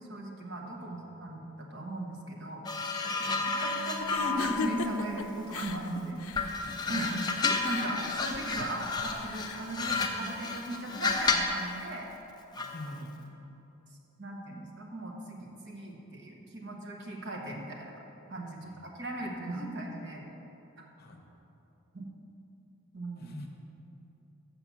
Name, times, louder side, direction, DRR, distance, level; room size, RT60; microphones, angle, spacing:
voice 1, 0.1-2.6 3.6-6.5 6.9-7.2 7.6-12.1 14.2-17.9 18.3-20.2 20.8-20.9 21.9-22.1 22.9-23.3, right 1 dB, 50° right, 0 dB, 1.1 m, -38 dB
sound 1, 2.6-5.9 6.3-11.6 12.6-12.8, left 3 dB, 20° left, 0.4 m, -32 dB
sound 2, 4.0-10.8, left 5 dB, 75° left, 0.4 m, -41 dB
voice 2, 12.6-13.2 18.6-18.8 19.2-19.3 21.0-21.2 23.2-23.5, left 1 dB, 45° left, 2 dB, 0.8 m, -46 dB
7.0 x 5.7 x 7.2 m, 3.0 s
head